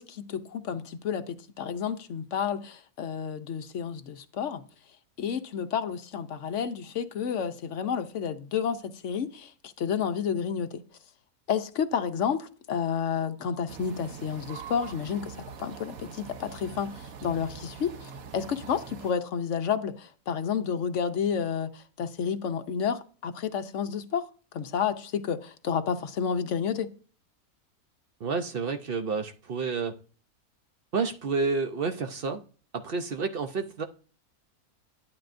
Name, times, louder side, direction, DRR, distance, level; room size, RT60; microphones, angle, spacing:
voice 1, 0.0-4.6 5.2-10.8 11.5-24.3 24.5-26.9, left 7 dB, 65° left, 0.9 m, -30 dB
sound 1, 13.7-19.1, right 6 dB, 75° right, 1.2 m, -44 dB
voice 2, 28.2-30.0 30.9-32.4 32.7-33.8, right 4 dB, 55° right, 0.6 m, -30 dB
11.5 x 8.7 x 2.5 m
omnidirectional pair, 1.6 m